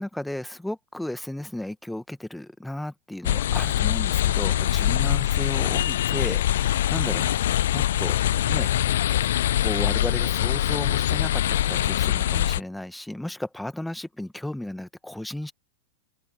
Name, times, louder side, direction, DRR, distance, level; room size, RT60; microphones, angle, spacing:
voice 1, 0.0-7.3 7.7-8.2 8.5-8.7 9.2-15.5, left 1 dB, 5° left, 1.7 m, -34 dB
sound 1, 3.2-12.6, left 12 dB, 60° left, 0.8 m, -23 dB
open air
figure-of-eight pair, 90°, 0 cm